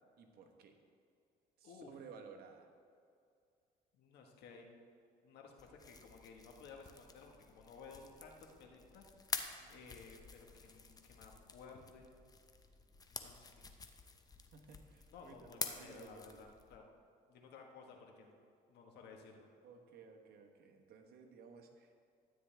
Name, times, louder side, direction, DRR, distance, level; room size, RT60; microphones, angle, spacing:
voice 1, 0.2-0.8 1.6-2.7 9.5-9.9 14.5-16.5 19.6-21.9, right 5 dB, 65° right, 4 dB, 1.3 m, -57 dB
voice 2, 1.6-2.0 3.9-4.7 5.2-9.1 9.7-12.1 13.1-13.7 15.1-16.9 17.3-18.4 18.7-19.5, left 4 dB, 75° left, 2 dB, 1.5 m, -56 dB
sound 1, 5.6-16.8, left 4 dB, 20° left, 0.7 m, -49 dB
12.5 x 9.4 x 3.4 m, 2.4 s
cardioid pair, 110°, 17 cm